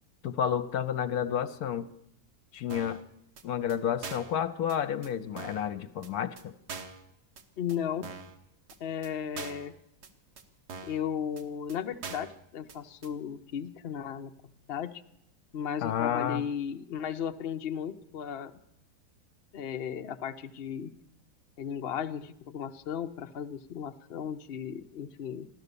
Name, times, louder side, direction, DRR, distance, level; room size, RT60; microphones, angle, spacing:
voice 1, 0.2-1.9 2.5-3.0 3.4-6.5 15.8-16.4, left 9 dB, 70° left, 12 dB, 1.2 m, -30 dB
sound 1, 2.7-3.0 3.4-3.5 3.7-3.8 4.0-4.4 4.7-4.8 5.0-5.1 5.4-5.7 6.0-6.1 6.4-6.5 6.7-7.0 7.4-7.5 7.7-7.8 8.0-8.3 8.7-8.8 9.0-9.1 9.4-9.7 10.0-10.1 10.4-10.5 10.7-11.0 11.4-11.5 11.7-11.8 12.0-12.4 12.7-12.8 13.0-13.1, right 5 dB, 80° right, 1.7 m, -42 dB
voice 2, 7.6-8.1 8.8-9.7 10.8-14.3 14.7-15.0 15.5-18.5 19.5-20.9 21.6-25.5, left 8 dB, 50° left, 6 dB, 0.7 m, -35 dB
15.5 x 12.0 x 6.8 m, 0.76 s
omnidirectional pair, 1.7 m